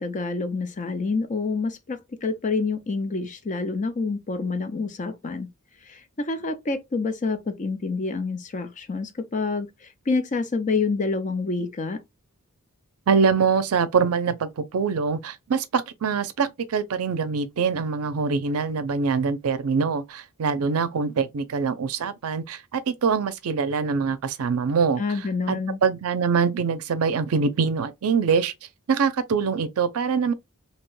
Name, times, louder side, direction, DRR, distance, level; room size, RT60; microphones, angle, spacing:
voice 1, 0.0-5.5 5.9-9.7 10.1-12.0 25.0-25.8, left 4 dB, 35° left, 0.5 m, -27 dB
voice 2, 13.1-25.0 25.5-28.5 28.9-30.3, right 5 dB, 70° right, 0.5 m, -24 dB
2.8 x 2.2 x 3.0 m
head